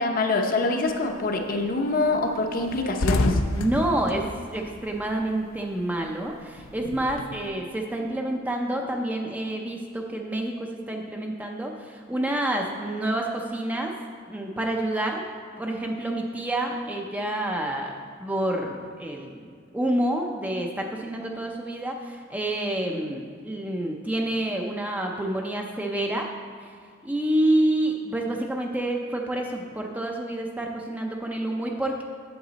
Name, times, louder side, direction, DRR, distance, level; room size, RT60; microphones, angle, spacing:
voice 1, 0.0-3.4, left 2 dB, 45° left, 3 dB, 0.7 m, -25 dB
sound 1, 0.9-1.2 1.6-1.8 2.0-2.2 2.5-5.5 5.8-7.4, left 2 dB, 75° left, 0.5 m, -28 dB
voice 2, 3.5-13.9 14.3-15.3 15.6-17.9 18.2-26.3 26.6-26.7 27.0-32.0, right 1 dB, 10° right, 1 dB, 0.5 m, -28 dB
7.9 x 7.2 x 4.0 m, 2.1 s
head